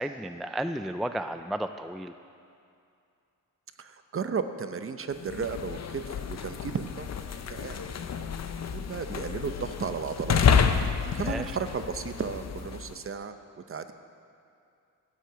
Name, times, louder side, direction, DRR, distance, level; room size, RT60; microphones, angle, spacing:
voice 1, 0.0-2.1 11.2-11.5, right 1 dB, ahead, 8 dB, 0.3 m, -33 dB
voice 2, 3.8-7.8 8.7-10.4 11.1-13.4 13.7-13.9, right 5 dB, 40° right, 9 dB, 0.7 m, -34 dB
sound 1, 5.1-13.0, left 6 dB, 50° left, 0.7 m, -29 dB
13.0 x 6.4 x 8.7 m, 2.5 s
cardioid pair, 90°, 34 cm